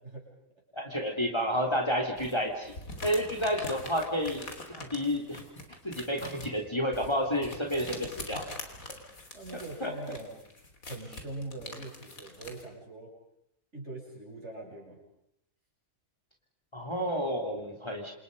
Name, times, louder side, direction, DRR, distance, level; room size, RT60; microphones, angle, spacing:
voice 1, 0.7-2.7 3.0-5.4 5.8-8.4 9.8-9.9 16.7-18.1, equal, 15° left, 2 dB, 3.3 m, -30 dB
sound 1, 2.2-12.6, left 2 dB, 65° left, 3.8 m, -44 dB
voice 2, 9.3-10.4 10.9-13.1 13.7-15.0, right 2 dB, 50° right, -1 dB, 8.0 m, -42 dB
29.0 x 27.5 x 5.5 m, 0.79 s
omnidirectional pair, 1.6 m